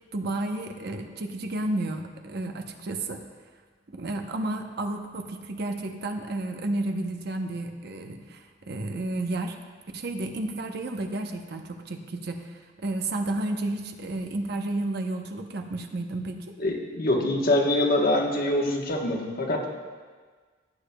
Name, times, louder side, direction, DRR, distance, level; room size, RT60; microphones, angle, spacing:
voice 1, 0.1-3.2 3.9-9.6 9.9-16.6, right 2 dB, 60° right, 5 dB, 0.8 m, -32 dB
voice 2, 16.6-19.7, left 1 dB, 55° left, 1 dB, 1.2 m, -24 dB
16.0 x 8.7 x 2.2 m, 1.5 s
head